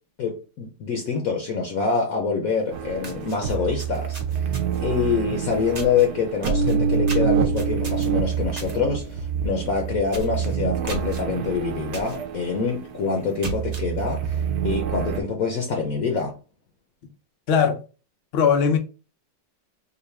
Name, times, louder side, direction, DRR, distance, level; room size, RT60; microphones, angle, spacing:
voice 1, 0.2-4.5 4.8-14.4 14.6-16.4, left 5 dB, 60° left, 1.0 m, -25 dB
sound 1, 2.6-2.7 3.0-4.9 5.7-6.1 6.4-8.8 9.1-9.4 9.7-9.8 10.1-10.4 10.9-11.2 11.9-12.2 12.6-12.7 13.2-13.9, right 2 dB, 50° right, 0.4 m, -37 dB
sound 2, 2.7-15.2, right 7 dB, 70° right, 1.0 m, -27 dB
voice 2, 17.5-17.8 18.3-18.8, left 6 dB, 80° left, 0.5 m, -19 dB
4.0 x 2.5 x 3.3 m
omnidirectional pair, 2.0 m